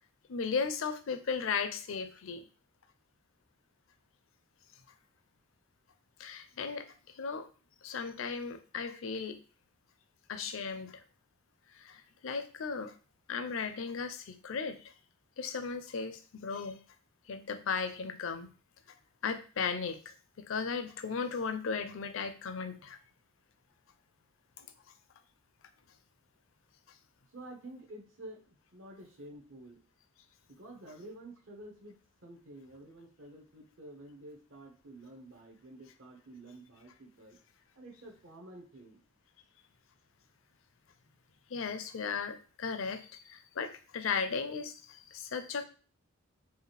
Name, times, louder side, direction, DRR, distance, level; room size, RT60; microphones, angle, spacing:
voice 1, 0.3-2.5 6.2-7.5 7.8-9.4 10.3-11.0 11.7-12.9 13.3-14.9 15.4-16.8 17.3-18.5 18.9-19.0 19.2-20.1 20.4-23.0 24.6-24.7 41.5-45.6, left 5 dB, 65° left, 9 dB, 0.5 m, -36 dB
voice 2, 27.3-29.8 30.5-37.4 37.7-39.0, right 1 dB, 65° right, 0 dB, 1.1 m, -50 dB
4.8 x 2.4 x 3.2 m, 0.37 s
head